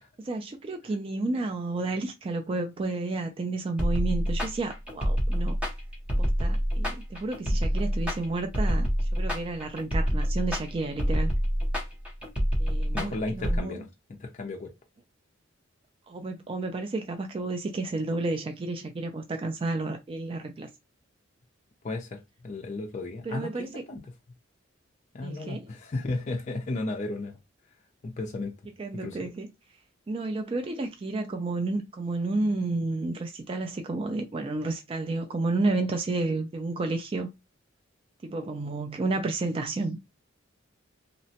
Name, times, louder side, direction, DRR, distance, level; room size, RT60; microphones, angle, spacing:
voice 1, 0.2-5.6 6.2-11.3 12.6-13.8 16.1-20.7 23.2-23.8 25.2-25.7 28.8-29.5 30.1-37.3 38.2-40.0, right 3 dB, 25° right, 0.3 m, -31 dB
sound 1, 3.8-13.6, equal, 5° right, 0.8 m, -27 dB
voice 2, 12.9-13.9 14.2-14.7 21.8-22.2 22.4-23.5 23.9-24.0 25.1-27.4 28.0-28.5 28.9-29.3, left 2 dB, 35° left, 0.4 m, -34 dB
2.8 x 2.1 x 2.7 m
head